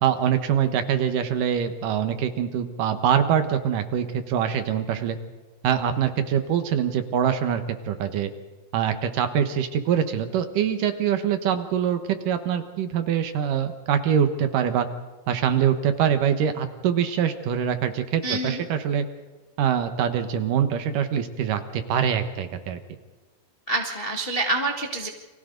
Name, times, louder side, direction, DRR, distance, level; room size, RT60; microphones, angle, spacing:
voice 1, 0.0-5.2 5.6-8.3 8.7-14.9 15.3-19.0 19.6-22.8, right 8 dB, 70° right, 8 dB, 2.7 m, -24 dB
voice 2, 18.2-18.6 23.7-25.1, right 2 dB, 40° left, 1 dB, 0.8 m, -26 dB
29.5 x 24.5 x 4.0 m, 1.3 s
omnidirectional pair, 4.2 m